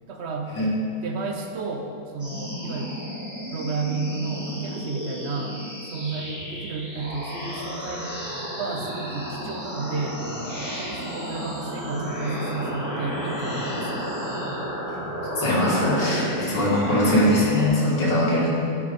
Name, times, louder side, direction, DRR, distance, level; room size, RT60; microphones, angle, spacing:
voice 1, 0.1-0.5 1.0-3.0 3.5-8.1 8.6-10.3 10.6-14.1, right 4 dB, 55° right, 3 dB, 0.7 m, -32 dB
sound 1, 2.2-17.7, equal, 10° right, 1.9 m, -32 dB
voice 2, 15.4-18.5, left 1 dB, 85° left, -6 dB, 2.4 m, -21 dB
9.5 x 4.8 x 5.3 m, 2.5 s
omnidirectional pair, 1.8 m